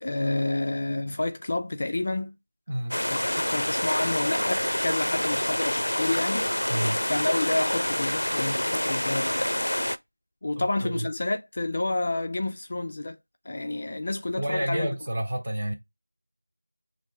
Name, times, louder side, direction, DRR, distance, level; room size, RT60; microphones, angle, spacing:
voice 1, 0.0-2.4 3.1-6.7 7.1-9.5 10.4-13.2 13.5-14.9, left 2 dB, 30° left, 0.4 m, -29 dB
sound 1, 2.9-10.0, left 1 dB, 90° left, 0.5 m, -27 dB
voice 2, 6.7-7.0 10.5-11.1 14.4-15.7, right 1 dB, 20° right, 0.9 m, -30 dB
5.4 x 2.6 x 3.3 m
figure-of-eight pair, 175°, 0 cm